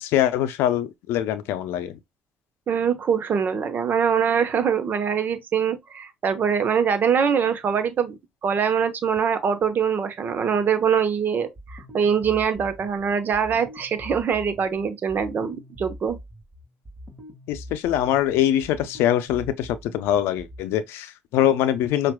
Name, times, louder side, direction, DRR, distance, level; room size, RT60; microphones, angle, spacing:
voice 1, 0.0-1.9 17.5-22.1, left 11 dB, 80° left, 0.5 m, -23 dB
voice 2, 2.7-16.2, right 7 dB, 50° right, 0.9 m, -23 dB
sound 1, 11.6-20.6, equal, 25° right, 1.7 m, -43 dB
5.9 x 2.5 x 2.2 m
supercardioid pair, 70°, 4 cm